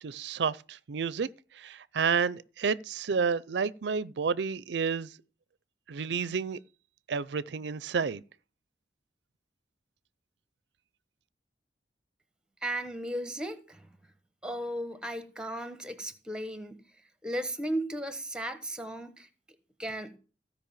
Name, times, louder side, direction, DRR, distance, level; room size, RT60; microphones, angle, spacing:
voice 1, 0.0-1.3 1.5-5.1 5.9-6.6 7.1-8.2, right 5 dB, 70° right, 0.5 m, -30 dB
voice 2, 12.6-13.9 14.4-16.8 17.2-19.3 19.8-20.1, right 1 dB, 5° right, 1.1 m, -35 dB
15.5 x 5.3 x 7.2 m
head